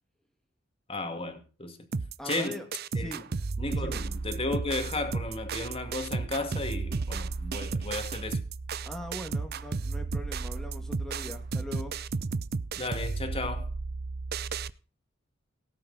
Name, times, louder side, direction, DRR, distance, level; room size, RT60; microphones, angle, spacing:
voice 1, 0.9-1.8 2.2-2.6 2.9-3.1 3.6-8.4 12.8-13.7, left 2 dB, 25° left, 2.2 m, -34 dB
sound 1, 1.9-14.7, right 4 dB, 50° right, 0.5 m, -33 dB
voice 2, 2.2-2.6 3.0-3.2 3.7-4.1 8.9-12.0, left 1 dB, ahead, 2.0 m, -41 dB
17.5 x 9.2 x 4.1 m
head